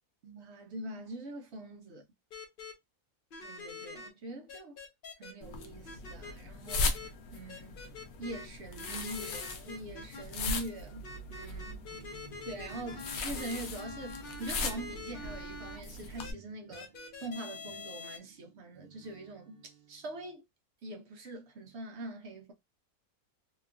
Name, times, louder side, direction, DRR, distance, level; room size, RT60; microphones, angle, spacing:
voice 1, 0.2-2.0 3.4-4.8 5.2-7.8 8.2-11.9 12.2-16.9 17.2-20.4 20.8-22.5, right 1 dB, 65° right, 0.7 m, -43 dB
sound 1, 2.3-2.7 3.3-4.1 4.5-5.3 5.8-6.3 6.7-7.1 7.5-8.5 8.8-10.2 11.0-15.8 16.2-16.3 16.7-18.2, left 3 dB, 55° left, 0.6 m, -45 dB
sound 2, 5.4-16.3, left 3 dB, 85° left, 1.1 m, -39 dB
sound 3, 11.9-20.4, right 7 dB, 80° right, 1.1 m, -57 dB
2.9 x 2.4 x 2.3 m
omnidirectional pair, 1.6 m